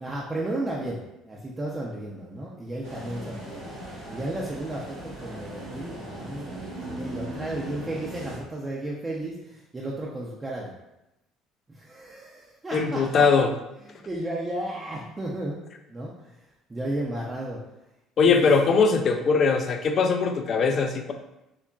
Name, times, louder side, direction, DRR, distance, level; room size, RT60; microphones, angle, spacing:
voice 1, 0.0-3.7 4.1-10.7 11.7-13.3 13.9-15.6 15.9-16.4 16.7-17.6 18.2-18.5, right 1 dB, 25° right, -4 dB, 0.5 m, -33 dB
sound 1, 2.8-8.4, right 1 dB, 90° right, 1.3 m, -38 dB
voice 2, 12.7-13.5 18.2-21.1, left 5 dB, 50° left, 5 dB, 0.3 m, -21 dB
3.7 x 2.1 x 2.3 m, 0.91 s
hypercardioid pair, 60°, 0 cm